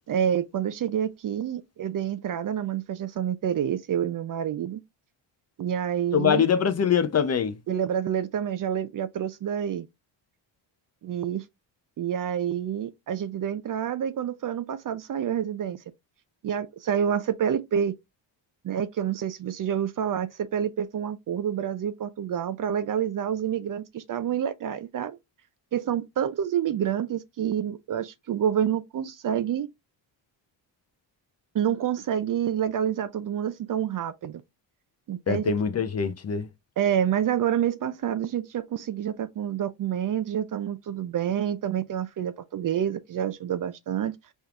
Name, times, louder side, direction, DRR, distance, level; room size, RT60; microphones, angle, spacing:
voice 1, 0.1-4.8 5.6-6.5 7.7-9.9 11.0-11.4 12.0-15.8 16.4-17.9 18.6-25.2 25.7-29.7 31.5-34.4 35.1-35.5 36.8-44.2, right 9 dB, 45° right, 0.5 m, -28 dB
voice 2, 6.1-7.5 35.3-36.5, left 7 dB, 35° left, 0.6 m, -23 dB
4.4 x 3.5 x 2.4 m
cardioid pair, 85°, 46 cm